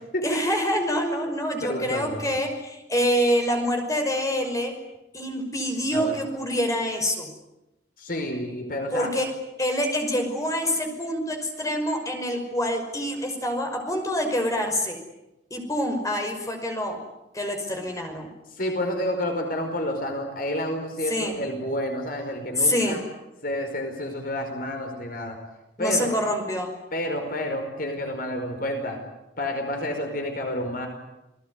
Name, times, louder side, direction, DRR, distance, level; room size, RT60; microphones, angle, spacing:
voice 1, 0.2-4.7 5.1-7.3 8.9-9.3 9.6-15.0 15.5-17.0 17.3-18.3 21.1-21.4 22.6-23.0 25.8-26.7, equal, 20° left, 4 dB, 5.7 m, -26 dB
voice 2, 1.6-2.4 5.9-6.2 8.0-9.1 18.5-23.0 23.4-25.4 25.8-26.1 26.9-29.0 29.4-30.9, left 1 dB, 55° left, 5 dB, 5.0 m, -29 dB
29.0 x 19.5 x 9.7 m, 0.93 s
head